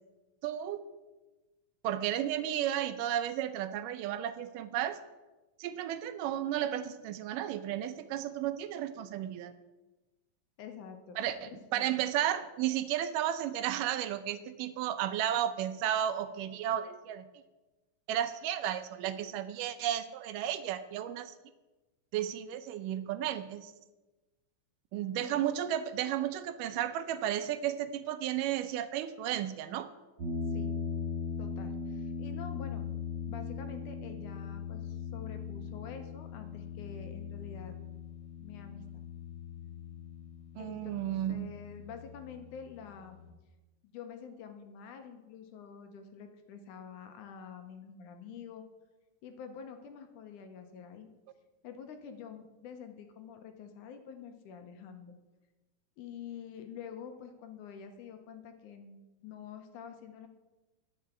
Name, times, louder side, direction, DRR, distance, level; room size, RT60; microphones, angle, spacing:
voice 1, 0.4-0.8 1.8-5.0 5.6-9.5 11.2-17.2 18.1-21.3 22.1-23.7 24.9-29.9 40.6-41.5, right 11 dB, 80° right, 11 dB, 2.1 m, -33 dB
voice 2, 10.6-11.2 11.5-11.9 25.2-25.4 30.5-30.7 31.4-32.8 33.3-37.7 38.4-38.8 40.6-43.2 43.8-48.6 49.2-51.1 51.6-55.1 56.0-60.3, left 7 dB, 75° left, 6 dB, 2.2 m, -47 dB
sound 1, 30.2-43.3, left 6 dB, 35° right, 2.8 m, -40 dB
10.0 x 5.9 x 8.3 m, 1.1 s
omnidirectional pair, 3.9 m